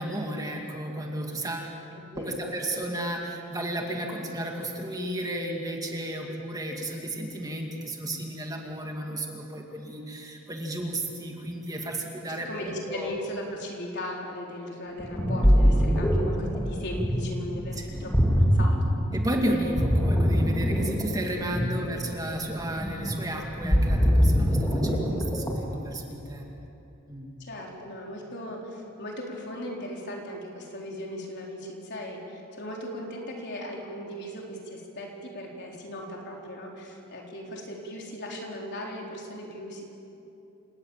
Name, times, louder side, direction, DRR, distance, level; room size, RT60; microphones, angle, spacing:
voice 1, 0.0-1.7 2.2-13.1 17.8-18.0 19.1-26.5 27.1-27.3, right 1 dB, 15° right, 1 dB, 2.2 m, -33 dB
voice 2, 2.0-2.4 12.4-18.8 21.6-21.8 27.4-39.8, left 1 dB, 50° left, -1 dB, 4.2 m, -38 dB
Ocean, 15.0-25.8, equal, 15° left, 2.5 m, -23 dB
29.0 x 18.0 x 7.3 m, 2.9 s
head